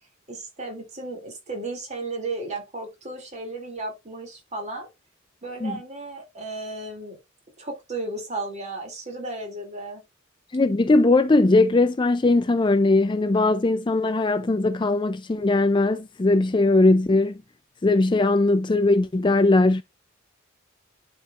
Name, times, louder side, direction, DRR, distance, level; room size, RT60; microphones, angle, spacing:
voice 1, 0.3-4.9 5.4-7.2 7.6-10.0, right 2 dB, 35° right, 2.6 m, -34 dB
voice 2, 10.5-17.4 17.8-19.8, left 2 dB, 20° left, 0.4 m, -20 dB
11.0 x 4.6 x 2.5 m
head